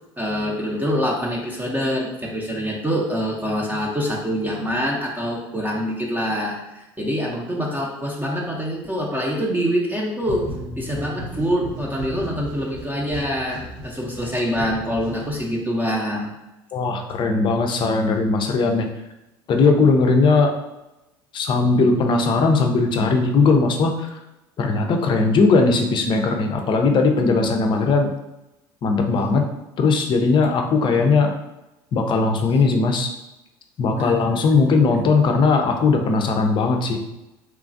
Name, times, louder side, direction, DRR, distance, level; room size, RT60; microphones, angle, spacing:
voice 1, 0.2-10.5 10.8-16.3 33.9-34.4, equal, 15° right, -3 dB, 0.6 m, -25 dB
sound 1, 10.2-15.8, right 2 dB, 85° right, 0.7 m, -35 dB
voice 2, 16.7-18.9 19.5-20.6 21.3-23.9 24.6-28.1 28.8-29.5 29.8-31.4 31.9-33.1 33.8-37.0, left 4 dB, 40° left, 4 dB, 0.5 m, -18 dB
3.0 x 2.4 x 2.5 m, 0.97 s
hypercardioid pair, 80°, 12 cm